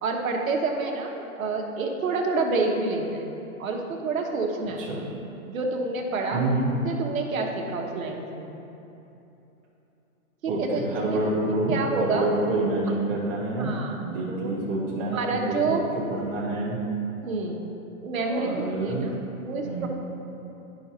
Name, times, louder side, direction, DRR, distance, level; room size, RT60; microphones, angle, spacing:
voice 1, 0.0-3.3 3.6-4.9 5.5-6.5 6.8-8.5 10.4-10.8 11.1-11.2 11.7-12.3 13.6-14.5 15.0-15.8 17.2-17.6 18.0-19.1 19.4-19.9, right 3 dB, 65° right, 1 dB, 1.1 m, -28 dB
voice 2, 6.3-6.7 10.5-13.7 14.0-15.8 16.1-16.8 18.2-19.0 19.6-19.9, right 2 dB, 10° right, -9 dB, 0.6 m, -27 dB
11.0 x 5.8 x 2.8 m, 3.0 s
hypercardioid pair, 160°, 44 cm